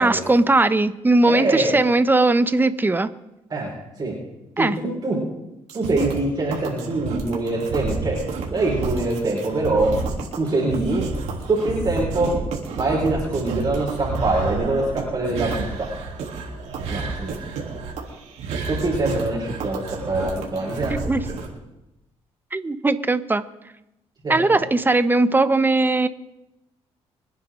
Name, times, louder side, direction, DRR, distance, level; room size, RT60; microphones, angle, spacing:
voice 1, 0.0-3.1 4.6-4.8 21.1-21.2 22.5-23.5 24.3-26.1, right 2 dB, 15° right, 13 dB, 0.9 m, -19 dB
voice 2, 1.2-1.8 3.5-3.7 4.0-4.2 4.6-5.2 5.7-8.2 8.5-9.9 10.3-11.1 11.5-12.3 12.8-15.6 16.9-17.3 18.7-21.4 24.2-24.6, right 2 dB, 35° right, -4 dB, 5.2 m, -24 dB
sound 1, 5.7-21.5, right 4 dB, 80° right, 3.4 m, -30 dB
24.5 x 9.9 x 3.9 m, 0.91 s
cardioid pair, 80°, 11 cm